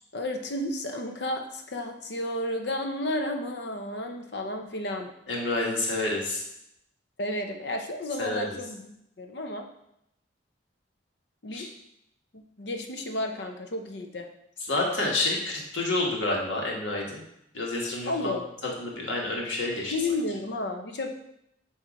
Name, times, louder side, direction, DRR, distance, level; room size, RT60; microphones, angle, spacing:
voice 1, 0.1-5.1 7.2-8.9 9.2-9.7 11.4-11.7 12.3-14.3 18.0-18.5 19.9-21.1, left 1 dB, 60° left, 4 dB, 0.8 m, -32 dB
voice 2, 5.3-6.4 8.2-8.6 11.5-11.6 14.7-17.2 17.5-18.3 18.6-19.9, left 2 dB, 90° left, -2 dB, 1.5 m, -29 dB
7.3 x 2.9 x 5.1 m, 0.78 s
head